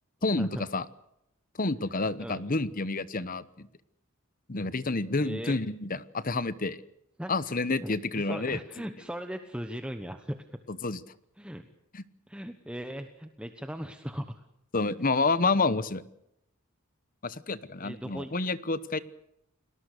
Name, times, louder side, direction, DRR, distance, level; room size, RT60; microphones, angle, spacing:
voice 1, 0.2-0.9 1.6-3.7 4.5-6.8 7.3-8.6 10.7-11.0 11.9-12.0 14.7-16.0 17.2-19.0, left 3 dB, 40° left, 15 dB, 1.1 m, -29 dB
voice 2, 2.0-2.4 5.2-5.6 7.2-7.3 7.8-10.6 11.4-11.7 12.3-14.4 17.8-18.3, equal, 5° right, 7 dB, 1.1 m, -38 dB
30.0 x 19.5 x 6.8 m, 0.80 s
head